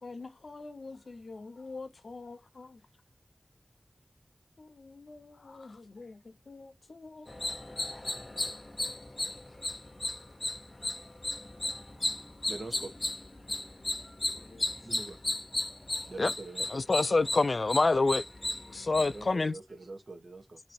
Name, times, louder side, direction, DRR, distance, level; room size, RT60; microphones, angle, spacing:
voice 1, 0.0-2.9 4.6-7.3 14.3-14.7, left 3 dB, 90° left, 0.7 m, -46 dB
sound 1, 7.3-19.4, left 2 dB, 35° left, 0.6 m, -35 dB
voice 2, 11.9-12.9 14.8-15.2 16.1-16.8 19.0-20.6, right 2 dB, 75° right, 1.1 m, -44 dB
voice 3, 16.7-18.2 18.7-19.6, left 3 dB, 70° left, 0.3 m, -26 dB
3.1 x 2.8 x 4.2 m
wide cardioid pair, 70°, 0 cm